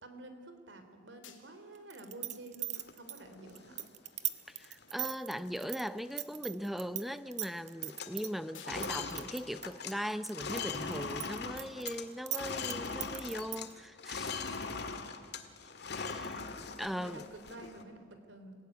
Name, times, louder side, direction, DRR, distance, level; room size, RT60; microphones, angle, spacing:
voice 1, 0.0-3.8 16.9-18.5, right 2 dB, 70° right, 7 dB, 3.2 m, -50 dB
sound 1, 0.7-0.8 1.2-1.8 2.3-2.4 2.7-3.2 3.5-3.6 3.9-4.0 4.2-5.2 5.5-5.8 6.4-6.5 6.9-7.1 7.4-7.6 8.0-8.3 8.5-8.8 9.1-9.3, left 9 dB, 90° left, 2.8 m, -58 dB
sound 2, 1.9-7.0 7.3-8.3 8.8-10.6 10.9-13.7, right 12 dB, 40° right, 1.0 m, -38 dB
sound 3, 2.8-3.9 4.3-4.4 4.6-5.0 5.4-5.7 5.9-7.0 7.3-7.5 7.8-13.7 14.0-17.8, left 4 dB, 60° left, 1.8 m, -41 dB
voice 2, 4.5-14.5 15.9-16.4 16.8-17.2, equal, ahead, 13 dB, 0.6 m, -39 dB
27.0 x 17.0 x 9.5 m, 2.1 s
head